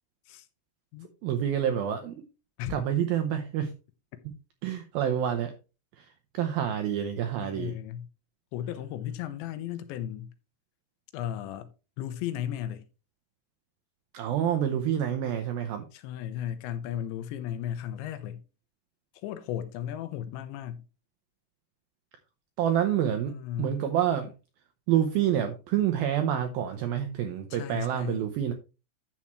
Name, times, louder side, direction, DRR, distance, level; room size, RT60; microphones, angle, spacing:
voice 1, 1.2-2.1 2.7-3.7 4.6-5.5 6.0-6.1 6.3-7.7 14.1-15.8 22.6-23.3 23.6-24.3 24.9-28.5, right 10 dB, 90° right, 2.1 m, -27 dB
voice 2, 7.4-8.1 8.5-10.3 11.1-11.7 12.0-12.8 15.9-18.4 19.2-20.8 23.3-23.8 27.5-28.2, left 10 dB, 85° left, 3.1 m, -35 dB
10.5 x 7.2 x 3.1 m
omnidirectional pair, 5.3 m